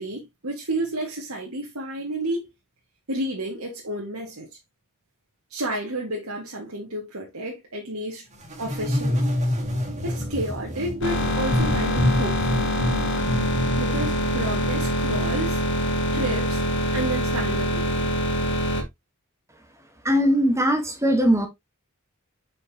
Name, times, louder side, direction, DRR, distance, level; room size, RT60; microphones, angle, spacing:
voice 1, 0.0-2.5 3.1-4.5 5.5-8.2 8.6-9.2 10.0-12.7 13.8-15.6 16.1-16.6 16.9-18.1, right 1 dB, 75° right, 2.0 m, -31 dB
sound 1, 8.4-15.2, left 1 dB, 35° right, 2.2 m, -27 dB
sound 2, 11.0-18.8, equal, 55° left, 2.0 m, -24 dB
voice 2, 20.0-21.5, equal, 15° right, 1.3 m, -20 dB
6.4 x 5.5 x 2.9 m
head